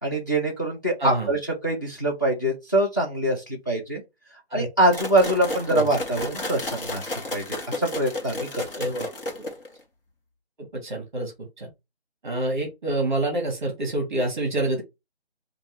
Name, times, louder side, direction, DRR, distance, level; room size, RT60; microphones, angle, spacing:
voice 1, 0.0-4.0 4.5-8.5, right 1 dB, 20° left, 0.8 m, -24 dB
voice 2, 1.0-1.3 4.5-4.7 5.7-5.8 8.7-9.1 10.7-11.7 12.2-14.8, right 1 dB, 15° right, 1.1 m, -27 dB
sound 1, 4.9-9.8, left 1 dB, 55° left, 1.4 m, -32 dB
4.5 x 2.6 x 3.2 m
hypercardioid pair, 175°, 33 cm